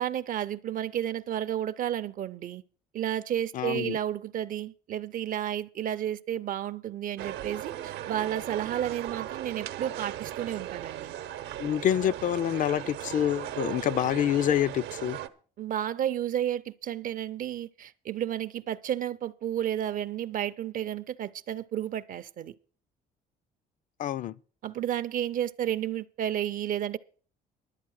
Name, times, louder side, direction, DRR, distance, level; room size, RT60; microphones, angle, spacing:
voice 1, 0.0-2.6 2.9-11.1 15.6-22.5 24.6-27.0, right 11 dB, 55° right, 0.5 m, -32 dB
voice 2, 3.5-4.0 11.6-15.2 24.0-24.3, left 11 dB, 50° left, 0.5 m, -27 dB
sound 1, 7.2-15.3, right 12 dB, 80° right, 0.8 m, -37 dB
11.5 x 8.3 x 6.3 m
cardioid pair, 110°, 17 cm